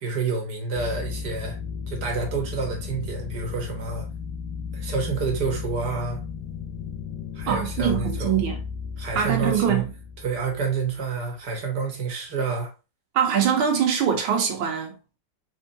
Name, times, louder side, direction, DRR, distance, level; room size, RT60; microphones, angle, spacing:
voice 1, 0.0-1.6 1.9-4.1 4.7-6.2 7.3-8.4 9.0-9.9 10.2-12.7, right 5 dB, 60° right, 1.5 m, -28 dB
sound 1, 0.7-11.2, left 6 dB, 75° left, 1.2 m, -34 dB
voice 2, 7.5-8.6 9.2-9.9 13.2-15.2, right 8 dB, 90° right, 1.7 m, -23 dB
4.3 x 3.6 x 2.7 m
omnidirectional pair, 2.2 m